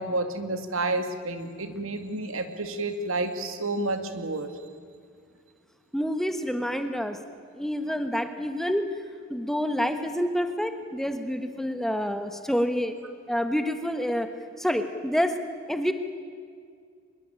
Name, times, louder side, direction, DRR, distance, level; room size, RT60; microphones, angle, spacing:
voice 1, 0.0-4.5, right 2 dB, 65° right, 8 dB, 2.3 m, -30 dB
voice 2, 5.9-7.2 7.6-9.0 9.3-12.9 13.3-14.3 14.6-15.4 15.7-15.9, equal, ahead, 8 dB, 1.2 m, -27 dB
24.5 x 22.0 x 8.9 m, 2.1 s
head